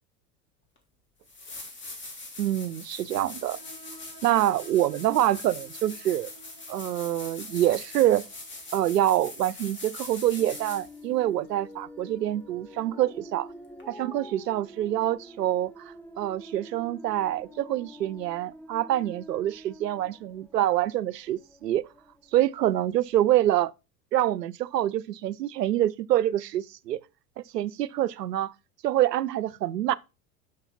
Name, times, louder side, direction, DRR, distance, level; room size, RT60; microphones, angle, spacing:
sound 1, 0.8-0.9 1.2-11.0 13.8-13.9, left 2 dB, 25° left, 2.1 m, -42 dB
voice 1, 2.4-3.6 4.2-6.3 6.7-8.2 8.7-13.5 14.0-21.8 22.3-23.7 24.1-27.0 27.5-28.5 28.8-30.0, right 13 dB, 75° right, 0.5 m, -26 dB
sound 2, 3.3-10.6, right 2 dB, 80° left, 2.7 m, -54 dB
sound 3, 10.4-22.8, equal, 5° left, 0.8 m, -47 dB
6.4 x 5.6 x 4.1 m
figure-of-eight pair, 80°, 48 cm